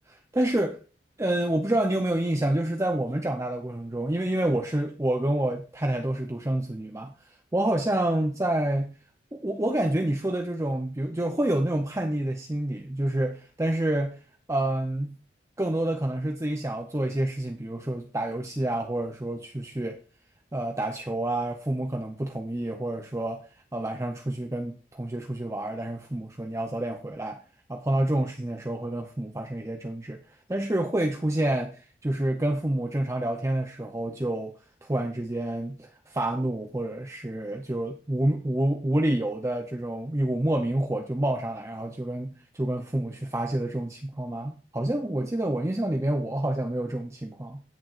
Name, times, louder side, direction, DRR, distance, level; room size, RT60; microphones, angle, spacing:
voice 1, 0.3-0.8 1.2-8.9 9.3-14.2 14.5-15.1 15.6-20.0 20.5-23.4 23.7-27.4 27.7-30.2 30.5-47.6, right 1 dB, 15° right, 0.6 m, -28 dB
17.0 x 6.7 x 2.5 m
head